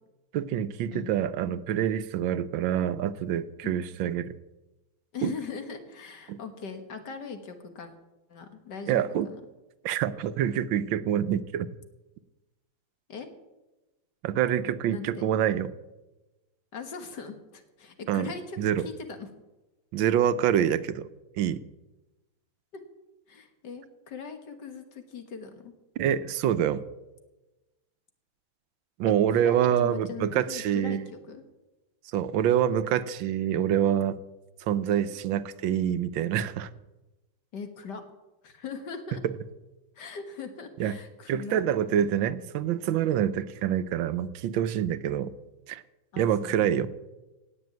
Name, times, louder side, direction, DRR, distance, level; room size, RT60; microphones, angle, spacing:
voice 1, 0.3-4.3 5.2-5.3 6.3-6.4 8.9-9.3 9.8-11.7 14.2-15.7 18.1-18.3 18.6-18.9 19.9-21.1 21.4-21.6 26.0-26.8 29.0-31.1 32.1-34.2 34.6-36.7 39.2-39.3 40.8-41.0 41.3-45.3 45.7-45.8 46.2-46.9, right 10 dB, 80° right, 13 dB, 1.4 m, -26 dB
voice 2, 5.1-7.9 8.3-9.4 13.1-13.3 14.9-15.3 16.7-19.3 23.3-25.7 29.3-31.4 37.5-38.0 38.4-39.2 40.0-41.6 46.1-46.7, left 5 dB, 60° left, 7 dB, 2.0 m, -40 dB
17.0 x 6.3 x 9.4 m, 1.1 s
omnidirectional pair, 2.1 m